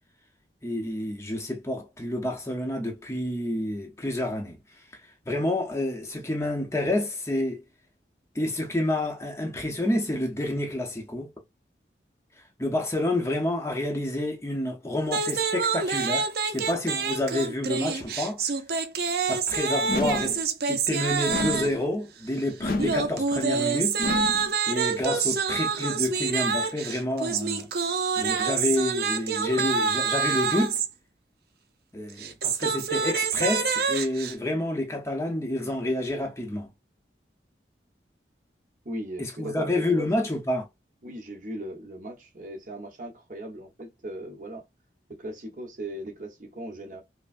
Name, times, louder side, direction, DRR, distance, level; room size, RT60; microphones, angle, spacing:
voice 1, 0.6-4.6 5.3-7.6 8.3-11.3 12.6-18.5 19.3-20.4 20.7-24.0 24.7-27.7 28.2-30.8 31.9-36.7 39.2-40.6, left 1 dB, 15° left, 0.8 m, -29 dB
sound 1, 15.1-21.8 22.8-30.9 32.1-34.3, right 5 dB, 60° right, 0.6 m, -27 dB
sound 2, 19.9-20.4 21.3-21.8 22.6-23.1 24.0-24.5, left 2 dB, 55° left, 0.7 m, -30 dB
voice 2, 38.8-40.4 41.0-44.6 45.1-47.0, right 1 dB, 45° right, 1.2 m, -38 dB
5.5 x 2.1 x 2.5 m
head